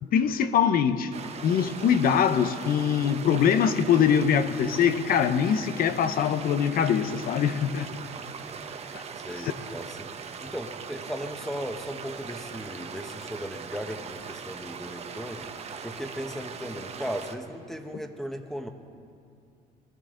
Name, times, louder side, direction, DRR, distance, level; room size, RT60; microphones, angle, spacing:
voice 1, 0.1-1.1 1.4-7.9 8.9-9.0, left 8 dB, 60° left, 11 dB, 0.9 m, -23 dB
sound 1, 1.1-17.4, right 6 dB, 40° right, 1.0 m, -40 dB
voice 2, 9.1-10.1 10.4-15.5 15.8-18.7, equal, ahead, 5 dB, 1.2 m, -37 dB
21.5 x 14.0 x 3.8 m, 2.3 s
cardioid pair, 110°, 17 cm